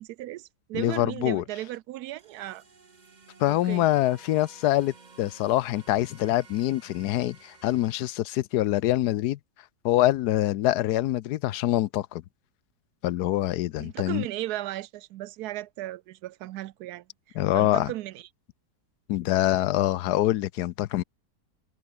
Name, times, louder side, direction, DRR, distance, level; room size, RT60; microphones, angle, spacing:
voice 1, 0.0-2.6 3.5-3.9 13.8-17.0 17.5-18.3, right 15 dB, 75° right, 1.0 m, -36 dB
voice 2, 0.8-1.4 3.4-9.4 9.8-12.2 13.0-14.3 17.4-17.9 19.1-21.0, left 14 dB, 75° left, 1.1 m, -25 dB
sound 1, 2.2-8.1, right 4 dB, 30° right, 1.3 m, -54 dB
omnidirectional pair, 1.8 m